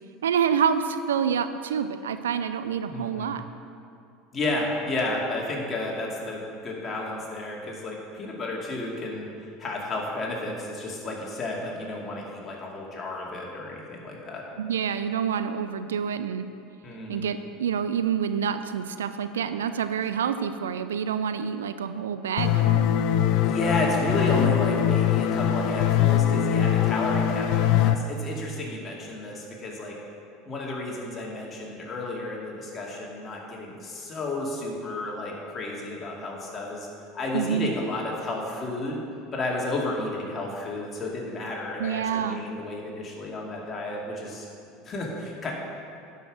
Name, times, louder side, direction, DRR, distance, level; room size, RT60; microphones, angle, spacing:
voice 1, 0.2-3.4 14.6-16.5 17.1-22.9 37.3-37.7 41.8-42.4, right 7 dB, 80° right, 10 dB, 0.4 m, -27 dB
voice 2, 2.9-3.4 4.3-9.3 9.6-14.4 16.8-17.3 23.4-29.9 30.5-36.9 37.1-39.0 39.3-44.4 44.8-45.5, left 2 dB, 30° left, -2 dB, 2.4 m, -32 dB
sound 1, 22.4-27.9, left 10 dB, 55° left, 0.4 m, -22 dB
11.0 x 5.6 x 6.3 m, 2.5 s
hypercardioid pair, 75°, 0 cm